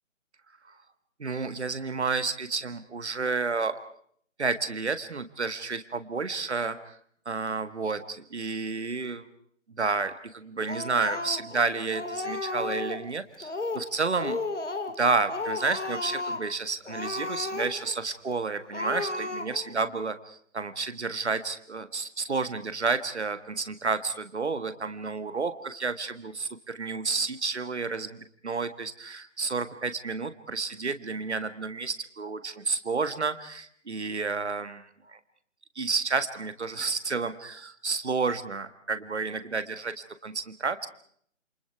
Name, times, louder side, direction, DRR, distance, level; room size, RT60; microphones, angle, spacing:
voice 1, 1.2-3.8 4.4-7.0 7.3-9.3 9.8-14.4 15.0-35.2 35.8-39.9 40.2-40.9, right 4 dB, 60° right, 11 dB, 1.7 m, -30 dB
Speech, 10.7-11.6 11.9-13.1 13.4-13.9 14.2-15.0 15.3-16.5 16.9-18.0 18.3-18.4 18.7-19.7, left 3 dB, 65° left, 2.6 m, -33 dB
28.5 x 28.0 x 4.8 m, 0.64 s
figure-of-eight pair, 150°, 38 cm